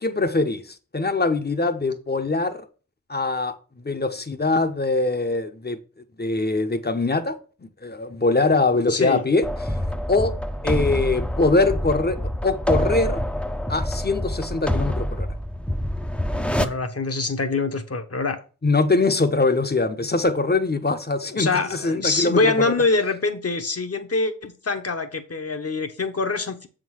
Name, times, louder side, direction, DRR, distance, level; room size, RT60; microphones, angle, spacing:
voice 1, 0.0-2.7 3.1-3.6 3.8-5.8 6.2-7.4 7.6-9.8 10.1-10.3 10.6-12.2 12.4-13.2 13.7-15.3 18.6-22.5, left 3 dB, 30° left, 0.9 m, -22 dB
voice 2, 8.9-9.2 16.5-18.4 21.3-26.7, left 3 dB, 50° left, 1.1 m, -24 dB
sound 1, 9.4-16.7, left 1 dB, 5° left, 0.6 m, -26 dB
7.3 x 3.8 x 6.2 m
wide cardioid pair, 70°, 32 cm